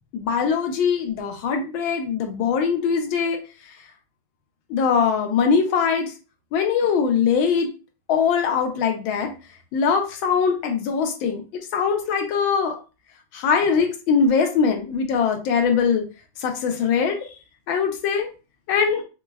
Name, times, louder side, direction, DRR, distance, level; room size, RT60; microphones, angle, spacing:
voice 1, 0.1-3.4 4.7-6.1 6.5-7.7 8.1-9.3 9.7-11.4 11.7-12.8 13.3-16.1 16.4-17.3 17.7-18.3 18.7-19.0, left 6 dB, 80° left, 4 dB, 1.4 m, -21 dB
4.5 x 2.0 x 2.3 m, 0.33 s
omnidirectional pair, 2.2 m